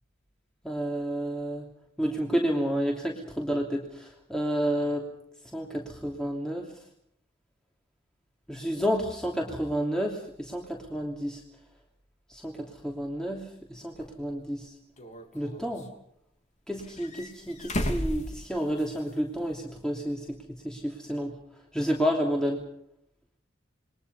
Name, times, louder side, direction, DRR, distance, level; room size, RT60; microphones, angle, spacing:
voice 1, 0.6-1.6 2.0-3.8 4.3-5.0 5.5-6.6 8.5-11.4 12.4-12.5 12.8-13.4 13.8-13.9 14.2-14.7 15.3-15.8 16.7-20.2 20.6-21.3 21.7-22.6, equal, 5° left, -1 dB, 3.0 m, -30 dB
sound 1, 14.0-14.1 15.0-15.9 16.8-19.1 19.4-19.5 21.1-21.2, equal, 40° left, 3.3 m, -34 dB
28.5 x 22.5 x 5.5 m, 0.73 s
head